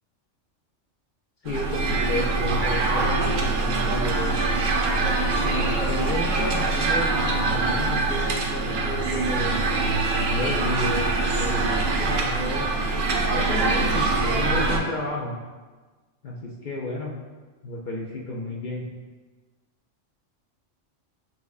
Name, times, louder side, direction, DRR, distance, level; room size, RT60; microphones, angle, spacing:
voice 1, 1.4-4.4 5.4-9.6 10.3-15.4 16.2-17.1 17.6-18.8, left 2 dB, 60° left, -2 dB, 0.5 m, -32 dB
sound 1, 1.5-14.8, right 3 dB, 90° right, 1.0 m, -24 dB
6.1 x 3.0 x 2.3 m, 1.3 s
omnidirectional pair, 1.3 m